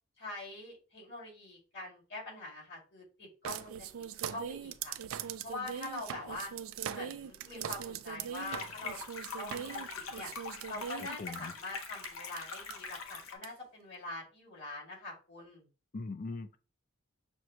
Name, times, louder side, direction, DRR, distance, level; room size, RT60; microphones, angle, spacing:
voice 1, 0.2-3.9 4.2-5.0 5.4-6.5 6.9-9.0 9.4-10.3 10.7-15.7, left 2 dB, 60° left, 2.2 m, -44 dB
sound 1, 3.4-11.4 12.0-12.1 12.4-12.7 13.4-13.5, right 8 dB, 75° right, 0.3 m, -41 dB
sound 2, 8.3-13.3, left 4 dB, 80° left, 0.7 m, -43 dB
voice 2, 11.0-11.5 15.9-16.6, left 3 dB, 40° left, 0.4 m, -41 dB
6.2 x 2.1 x 2.9 m
head